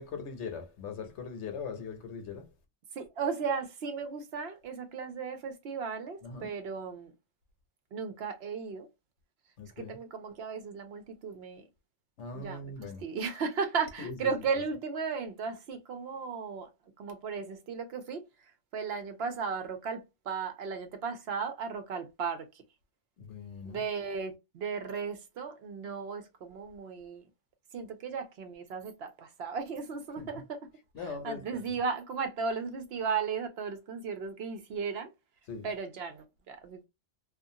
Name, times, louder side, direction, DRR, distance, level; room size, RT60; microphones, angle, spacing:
voice 1, 0.0-2.4 6.2-6.5 9.6-10.0 12.2-13.0 14.0-14.1 23.3-23.8 30.2-30.3 31.0-31.4 35.5-35.7, left 5 dB, 75° left, 1.0 m, -40 dB
voice 2, 3.0-7.1 7.9-8.9 9.8-11.6 12.3-16.7 17.0-18.2 18.7-22.5 23.7-27.2 27.7-30.7 31.0-35.1 35.6-36.9, right 5 dB, 65° right, 0.8 m, -35 dB
2.5 x 2.4 x 2.7 m
omnidirectional pair, 1.2 m